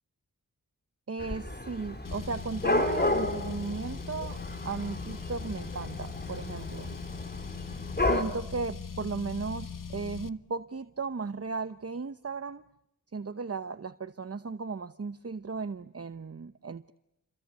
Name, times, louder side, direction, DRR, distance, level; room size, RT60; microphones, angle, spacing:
voice 1, 1.1-6.9 8.1-12.6 13.1-16.9, right 4 dB, 45° right, 11 dB, 0.9 m, -36 dB
Dog / Cat, 1.2-8.2, left 2 dB, 30° left, 3.5 m, -32 dB
Car, 2.0-10.3, left 6 dB, 70° left, 1.1 m, -40 dB
29.5 x 23.5 x 8.2 m, 0.86 s
wide cardioid pair, 50°, 33 cm